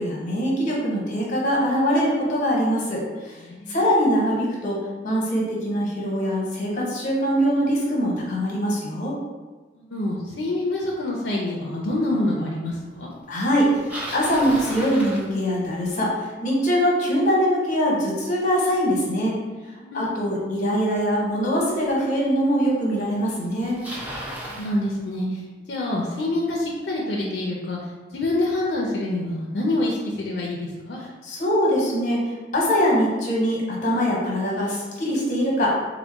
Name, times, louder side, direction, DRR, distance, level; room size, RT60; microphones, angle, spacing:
voice 1, 0.0-4.8 5.0-9.1 13.3-19.4 19.9-23.8 31.2-35.7, equal, 45° left, -3 dB, 1.0 m, -23 dB
voice 2, 3.4-3.8 9.7-13.1 19.7-20.1 24.5-25.4 25.7-27.8 28.1-31.0, left 1 dB, 75° left, -2 dB, 0.5 m, -26 dB
Bicycle, 13.5-15.9 20.9-21.0 21.9-22.0 23.0-23.1 23.3-24.8, equal, 10° right, 0.5 m, -35 dB
3.8 x 2.1 x 3.5 m, 1.3 s
head